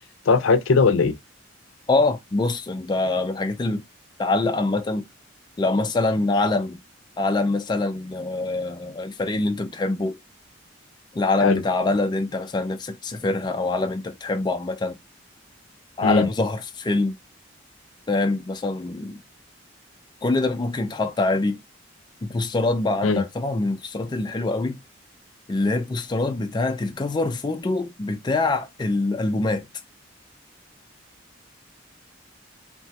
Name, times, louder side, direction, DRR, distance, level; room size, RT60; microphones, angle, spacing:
voice 1, 0.3-1.2 11.4-11.6 16.0-16.3 23.0-23.2, left 4 dB, 85° left, 0.4 m, -19 dB
voice 2, 1.9-3.8 4.2-5.1 5.6-6.8 7.2-10.2 11.1-15.0 16.0-17.1 18.1-19.2 20.2-21.6 22.2-24.8 25.5-29.7, left 2 dB, 20° left, 0.3 m, -24 dB
2.9 x 2.2 x 2.7 m
head